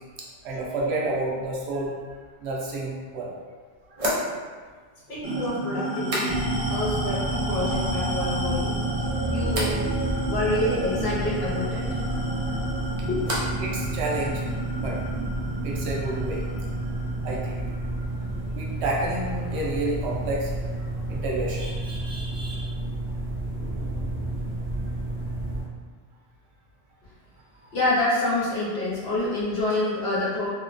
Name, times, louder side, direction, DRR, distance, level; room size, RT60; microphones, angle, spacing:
voice 1, 0.4-1.9 2.4-3.3 3.9-4.0 12.1-12.6 12.8-12.9 13.6-15.0 15.6-16.4 17.2-17.6 18.5-22.7 27.6-27.7, right 2 dB, 90° right, -3 dB, 0.9 m, -30 dB
sound 1, 3.9-6.8 7.1-7.7 8.0-8.6 9.5-9.8 12.2-13.7 14.0-14.6, equal, 45° right, 0.5 m, -34 dB
voice 2, 5.1-6.4 6.7-8.8 9.3-10.0 10.3-11.8 13.0-13.2 27.7-30.5, left 2 dB, 70° left, -8 dB, 1.1 m, -27 dB
sound 2, 5.2-20.1, right 1 dB, 60° right, 1.0 m, -32 dB
sound 3, 6.3-25.6, right 1 dB, 25° left, 0.5 m, -31 dB
2.8 x 2.1 x 2.5 m, 1.5 s
omnidirectional pair, 1.1 m